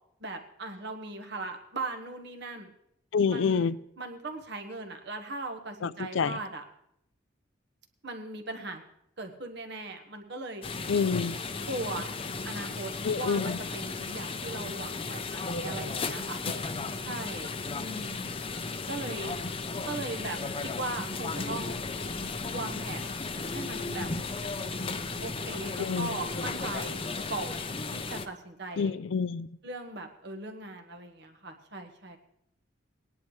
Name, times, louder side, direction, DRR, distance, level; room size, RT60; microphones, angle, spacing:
voice 1, 0.2-2.7 3.3-3.7 4.0-6.6 8.0-8.8 9.2-10.6 11.7-12.1 12.4-16.4 17.0-17.5 17.8-18.2 18.9-19.4 19.9-20.4 20.6-21.8 22.5-24.1 25.2-27.0 27.3-29.0 29.6-32.2, right 2 dB, 60° right, 1.4 m, -39 dB
voice 2, 3.1-3.8 5.8-6.4 10.9-11.4 13.0-13.6 25.8-26.1 28.8-29.5, left 5 dB, 75° left, 0.4 m, -27 dB
sound 1, 10.6-28.3, left 3 dB, 30° left, 0.6 m, -35 dB
19.0 x 10.5 x 3.2 m
head